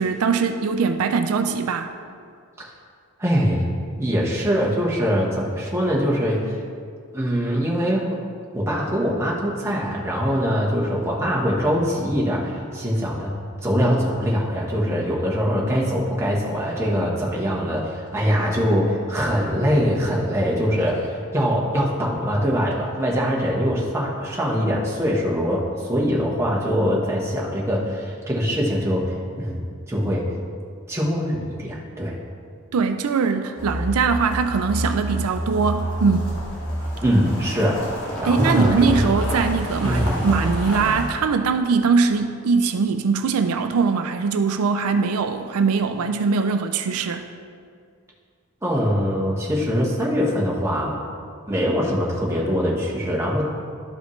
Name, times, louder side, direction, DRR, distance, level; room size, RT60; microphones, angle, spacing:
voice 1, 0.0-1.9 32.7-36.3 38.2-47.2, right 5 dB, 80° right, 8 dB, 0.4 m, -21 dB
voice 2, 3.2-3.6 4.0-6.6 7.1-8.0 8.5-13.3 13.6-30.2 30.9-32.1 37.0-37.8 38.2-39.1 39.8-40.2 48.6-50.9 51.5-53.4, equal, 10° right, -4 dB, 1.1 m, -23 dB
sound 1, 33.6-41.1, equal, 75° left, 1.8 m, -28 dB
12.5 x 5.0 x 3.2 m, 2.2 s
head